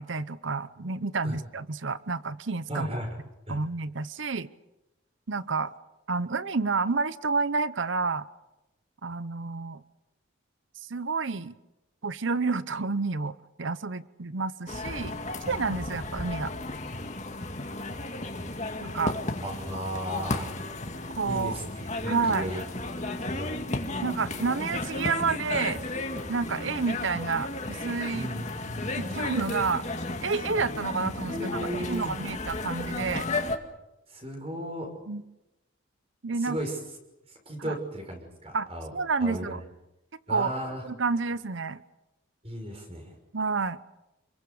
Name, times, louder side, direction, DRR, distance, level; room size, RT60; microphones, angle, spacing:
voice 1, 0.0-2.9 3.5-4.5 5.3-5.7 6.1-8.3 9.0-9.8 10.9-11.5 12.0-15.2 15.5-16.5 18.8-19.2 21.2-21.6 22.1-22.5 24.0-25.8 26.3-28.3 28.9-29.8 30.2-31.5 31.9-33.3 35.1-35.2 36.2-36.6 37.6-37.8 38.5-39.6 40.3-40.6 40.8-41.8 43.3-43.8, right 4 dB, 70° right, 15 dB, 0.8 m, -29 dB
voice 2, 2.7-3.2 3.5-3.6 19.4-20.5 21.2-22.7 23.2-23.6 28.1-29.3 31.2-32.2 34.1-34.9 36.3-36.8 37.3-38.9 39.2-39.6 40.3-40.8 42.4-43.2, equal, 30° right, 3 dB, 5.9 m, -35 dB
sound 1, 14.7-33.6, left 2 dB, 35° left, 2.2 m, -34 dB
29.5 x 22.0 x 7.0 m, 0.96 s
head